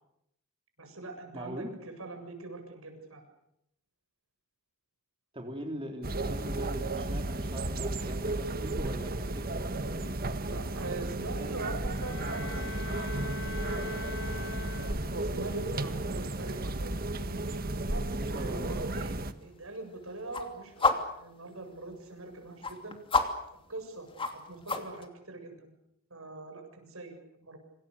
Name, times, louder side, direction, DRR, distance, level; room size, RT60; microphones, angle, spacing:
voice 1, 0.8-3.3 10.4-14.5 15.1-17.4 17.9-23.0 23.5-25.7 26.1-27.6, right 2 dB, 85° right, 5 dB, 7.7 m, -43 dB
voice 2, 1.3-1.7 5.3-10.3 18.2-18.8, right 1 dB, 25° right, 2 dB, 3.5 m, -42 dB
sound 1, 6.0-19.3, right 2 dB, 45° right, 1.6 m, -33 dB
Bowed string instrument, 11.9-15.4, left 4 dB, 90° left, 4.4 m, -42 dB
sound 2, 13.8-25.1, left 3 dB, 25° left, 2.9 m, -37 dB
27.0 x 26.5 x 6.8 m, 0.80 s
head